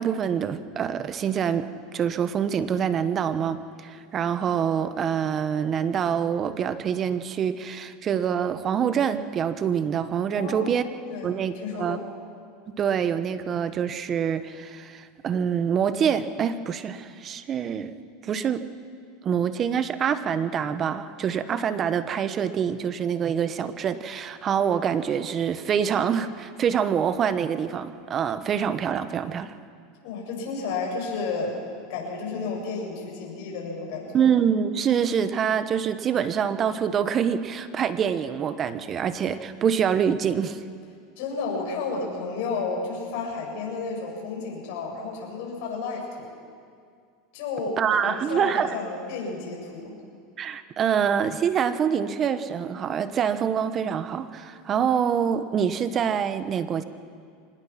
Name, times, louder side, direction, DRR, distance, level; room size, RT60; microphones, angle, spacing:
voice 1, 0.0-10.8 11.2-12.0 12.8-17.9 18.2-18.6 19.2-29.5 34.1-40.6 47.8-48.7 50.4-56.8, right 8 dB, 35° right, 12 dB, 1.2 m, -25 dB
voice 2, 10.4-12.0 30.0-31.6 31.9-34.2 41.2-46.4 47.3-50.0, left 4 dB, 70° left, -1 dB, 7.1 m, -32 dB
25.0 x 19.5 x 6.0 m, 2.2 s
supercardioid pair, 115°, 0 cm